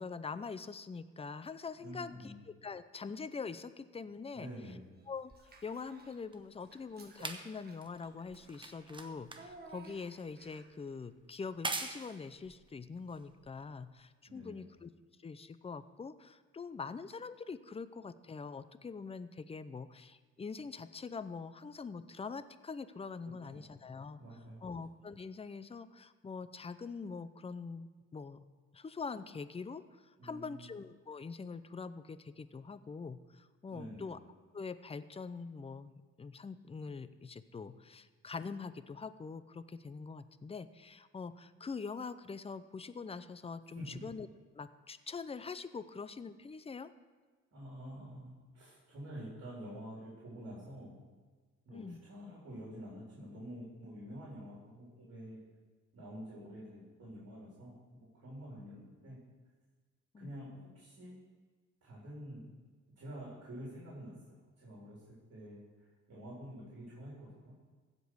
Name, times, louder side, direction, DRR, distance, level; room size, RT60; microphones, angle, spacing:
voice 1, 0.0-4.5 5.1-5.3 5.6-14.9 15.2-24.2 24.6-28.4 28.7-34.2 34.5-35.9 36.2-44.3 44.5-46.9 51.7-52.0 60.1-60.3, left 5 dB, 20° left, 13 dB, 0.5 m, -44 dB
voice 2, 1.8-2.4 4.3-4.8 14.3-14.6 23.5-23.6 24.2-24.6 30.2-30.7 33.7-34.1 43.7-44.0 47.5-51.0 51.6-55.4 55.9-59.2 60.2-61.2 61.8-62.5 63.0-65.6 66.1-67.6, equal, 55° right, -6 dB, 3.8 m, -48 dB
sound 1, 5.3-13.9 14.8-14.9, right 2 dB, 15° right, 1.0 m, -45 dB
Child speech kid speaking / Bathtub (filling or washing), 5.3-6.2 6.6-10.8, right 3 dB, 30° right, 1.5 m, -57 dB
15.5 x 5.3 x 6.3 m, 1.4 s
cardioid pair, 90°, 30 cm